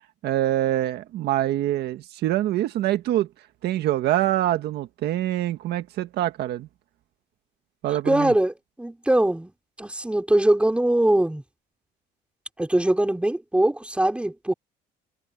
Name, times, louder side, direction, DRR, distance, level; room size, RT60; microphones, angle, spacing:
voice 1, 0.2-3.3 3.6-6.7 7.8-8.3, right 13 dB, 75° right, 1.7 m, -25 dB
voice 2, 8.0-8.5 8.8-9.5 9.8-11.4 12.6-14.5, right 1 dB, 5° right, 4.5 m, -21 dB
cardioid pair, 110°, 17 cm